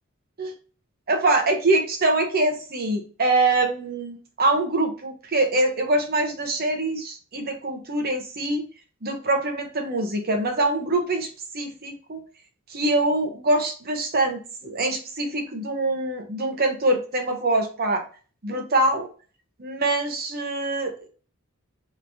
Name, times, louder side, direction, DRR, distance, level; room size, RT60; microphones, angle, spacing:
voice 1, 1.1-8.7 9.0-11.3 11.5-12.2 12.7-18.0 18.4-19.1 19.6-21.1, right 2 dB, 45° right, 4 dB, 0.8 m, -24 dB
3.5 x 3.2 x 2.6 m, 0.38 s
head